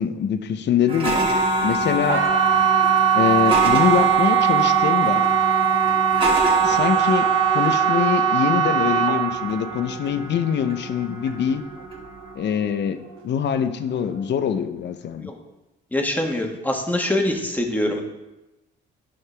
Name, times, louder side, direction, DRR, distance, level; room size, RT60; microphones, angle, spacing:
voice 1, 0.0-1.3 1.6-2.3 3.2-5.3 6.6-11.6 12.4-15.3, left 8 dB, 60° left, 9 dB, 0.7 m, -24 dB
sound 1, 0.9-12.3, right 3 dB, 25° right, 2.2 m, -25 dB
sound 2, 2.0-12.9 13.1-13.7 14.1-14.2, right 9 dB, 85° right, 0.8 m, -21 dB
voice 2, 15.9-18.0, left 1 dB, 10° left, 1 dB, 1.5 m, -24 dB
11.0 x 5.6 x 3.4 m, 1.0 s
cardioid pair, 90°, 20 cm